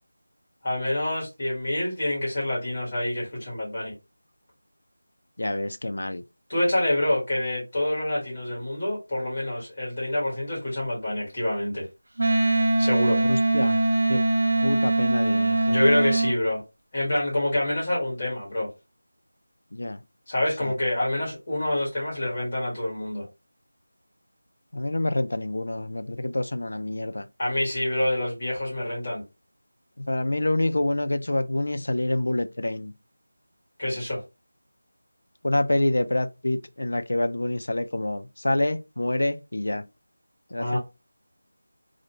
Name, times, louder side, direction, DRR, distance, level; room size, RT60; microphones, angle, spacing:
voice 1, 0.6-3.9 6.5-11.9 12.8-13.2 15.6-16.6 16.9-18.7 20.3-23.3 27.4-29.2 33.8-34.2 40.6-40.8, left 1 dB, 25° left, 1.2 m, -27 dB
voice 2, 5.4-6.2 13.3-13.8 14.1-14.2 14.6-15.8 19.7-20.0 20.6-20.7 24.7-27.3 30.0-32.9 35.4-39.8 40.5-40.8, left 1 dB, 70° left, 0.3 m, -27 dB
Wind instrument woodwind instrument, 12.2-16.3, right 2 dB, 50° right, 0.3 m, -22 dB
2.4 x 2.1 x 2.8 m
figure-of-eight pair, 175°, 0 cm